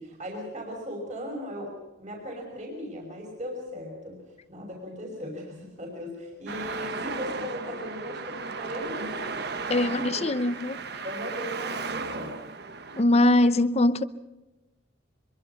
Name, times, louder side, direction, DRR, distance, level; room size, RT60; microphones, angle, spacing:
voice 1, 0.0-1.7 2.0-4.2 4.5-9.4 9.7-10.3 11.0-12.3, equal, 40° right, 5.8 m, -37 dB
Traffic noise roadway noise, 6.5-13.0, right 4 dB, 55° right, 1.4 m, -35 dB
voice 2, 9.7-10.8 13.0-14.0, left 1 dB, 30° left, 0.7 m, -22 dB
24.5 x 23.5 x 5.8 m
head